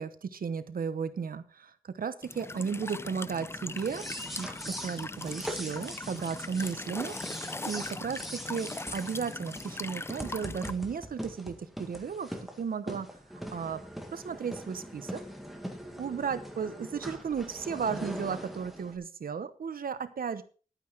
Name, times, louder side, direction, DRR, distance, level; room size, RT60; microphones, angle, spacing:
voice 1, 0.0-4.1 4.4-13.1 13.5-13.8 14.1-15.2 16.0-20.4, right 6 dB, 75° right, 12 dB, 0.9 m, -35 dB
Walk footsteps / Chirp tweet / Stream, 2.2-10.7, left 2 dB, 15° left, 0.4 m, -40 dB
sound 1, 3.7-19.0, equal, ahead, 1.8 m, -42 dB
11.0 x 9.2 x 4.6 m, 0.39 s
wide cardioid pair, 125°, 15 cm